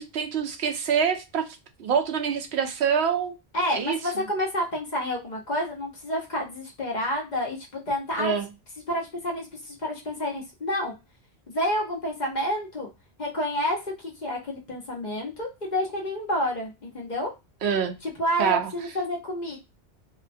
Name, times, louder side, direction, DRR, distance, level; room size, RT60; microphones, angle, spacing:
voice 1, 0.0-1.5 1.8-3.3 3.7-4.0 8.2-8.5 17.6-18.0 18.4-18.7, right 7 dB, 85° right, 0.9 m, -25 dB
voice 2, 3.5-8.3 8.9-10.9 11.5-12.9 13.2-17.3 18.0-19.6, equal, 45° left, 0.9 m, -29 dB
2.7 x 2.2 x 2.6 m
omnidirectional pair, 1.1 m